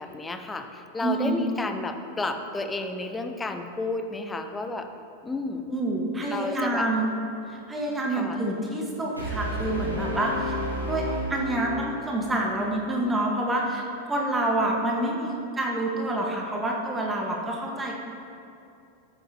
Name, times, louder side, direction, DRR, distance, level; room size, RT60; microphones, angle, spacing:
voice 1, 0.0-4.9 5.2-5.7 6.3-6.9 8.1-8.4, left 2 dB, 10° left, 7 dB, 0.7 m, -32 dB
voice 2, 1.0-1.4 5.7-7.0 7.5-10.5 10.8-11.0 11.3-17.9, right 1 dB, 10° right, -1 dB, 1.4 m, -27 dB
Brass instrument, 9.2-12.2, equal, 90° left, 2.0 m, -31 dB
13.0 x 9.9 x 2.9 m, 2.6 s
figure-of-eight pair, 90°, 0 cm